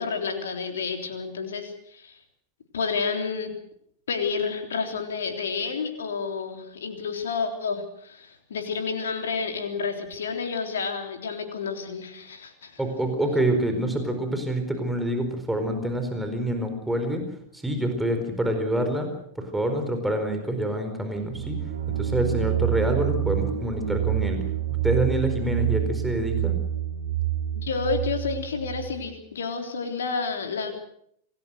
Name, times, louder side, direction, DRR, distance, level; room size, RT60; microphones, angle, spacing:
voice 1, 0.0-2.2 2.7-3.5 4.1-12.8 27.5-30.8, left 5 dB, 65° left, 5 dB, 3.6 m, -30 dB
voice 2, 12.8-17.2 17.5-19.1 19.4-21.6 21.9-24.4 24.8-26.6, right 1 dB, 5° right, 5 dB, 4.5 m, -26 dB
sound 1, 21.2-28.9, right 11 dB, 65° right, 3.5 m, -27 dB
27.0 x 19.5 x 6.5 m, 0.69 s
figure-of-eight pair, 90°, 0 cm